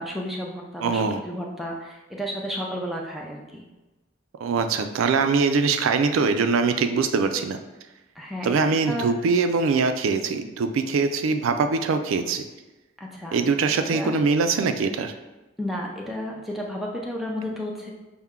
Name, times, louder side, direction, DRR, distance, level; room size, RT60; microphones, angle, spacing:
voice 1, 0.0-3.6 8.2-8.5 8.9-9.1 13.0-13.4 13.9-14.2 15.6-17.9, equal, ahead, -2 dB, 0.4 m, -32 dB
voice 2, 0.8-1.2 4.4-7.6 8.4-12.4 13.3-15.1, right 4 dB, 80° right, 7 dB, 0.3 m, -22 dB
5.6 x 2.1 x 3.6 m, 1.1 s
head